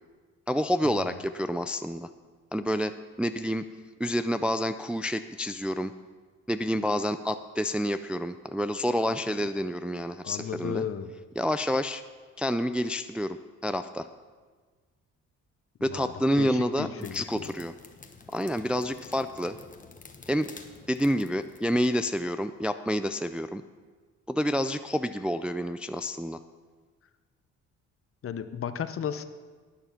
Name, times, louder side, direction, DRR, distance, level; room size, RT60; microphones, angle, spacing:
voice 1, 0.5-2.1 2.5-3.6 4.0-5.9 6.5-10.8 11.4-12.0 12.4-13.4 13.6-14.1 15.8-17.7 18.3-19.6 20.3-20.5 20.9-23.6 24.3-26.4, equal, 5° right, 10 dB, 0.3 m, -28 dB
voice 2, 10.2-11.1 15.8-17.5 28.2-29.2, left 8 dB, 45° left, 11 dB, 0.8 m, -35 dB
sound 1, 17.0-22.3, left 4 dB, 25° left, 1.1 m, -50 dB
11.0 x 8.9 x 5.8 m, 1.4 s
cardioid pair, 90°, 30 cm